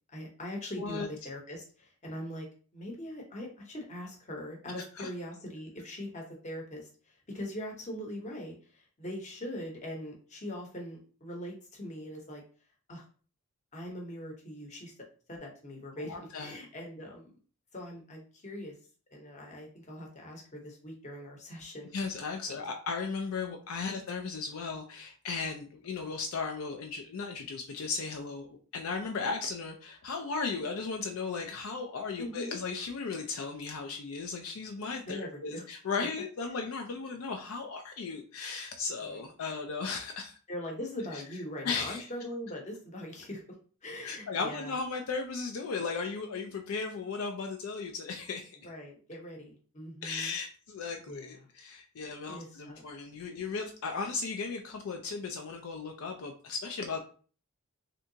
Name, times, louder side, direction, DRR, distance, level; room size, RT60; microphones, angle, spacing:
voice 1, 0.1-2.5 2.7-12.4 12.9-13.0 13.7-14.9 15.3-17.3 17.7-18.7 19.1-21.9 22.5-22.7 23.8-23.9 32.2-32.6 35.1-35.6 39.0-39.3 40.5-43.4 43.8-44.8 48.6-50.3 51.1-51.4 52.3-52.8, left 1 dB, 30° left, 0 dB, 0.8 m, -41 dB
voice 2, 0.8-1.1 5.0-5.1 16.0-16.6 21.9-40.4 41.1-41.2 41.6-42.1 44.0-48.6 50.0-57.0, left 4 dB, 65° left, 3 dB, 0.4 m, -36 dB
3.3 x 2.7 x 2.7 m, 0.40 s
head